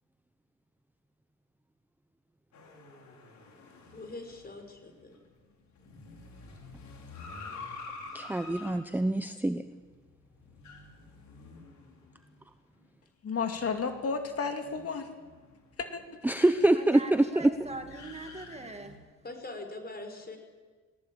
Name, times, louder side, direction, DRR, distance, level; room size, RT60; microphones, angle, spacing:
sound 1, 2.5-12.4 12.8-12.9 13.5-19.0, left 3 dB, 65° left, 5.1 m, -49 dB
voice 1, 3.9-5.2 19.2-20.4, left 2 dB, 30° left, 5 dB, 5.7 m, -42 dB
voice 2, 8.1-9.6 16.2-17.5, right 1 dB, 5° right, 10 dB, 0.8 m, -25 dB
voice 3, 13.2-15.1 15.8-16.0, left 5 dB, 50° left, 5 dB, 2.5 m, -32 dB
voice 4, 16.7-19.0, right 2 dB, 20° right, 5 dB, 2.2 m, -42 dB
20.0 x 19.0 x 9.0 m, 1.4 s
cardioid pair, 90°, 30 cm